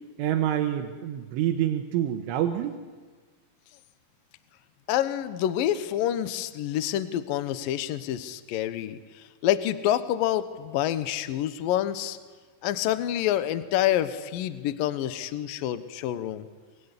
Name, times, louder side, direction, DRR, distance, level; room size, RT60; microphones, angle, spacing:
voice 1, 0.2-2.8, right 11 dB, 85° right, 4 dB, 3.6 m, -27 dB
voice 2, 4.9-9.0 9.4-12.2 12.6-16.5, left 12 dB, 80° left, 12 dB, 2.0 m, -27 dB
24.0 x 24.0 x 9.9 m, 1.4 s
omnidirectional pair, 5.6 m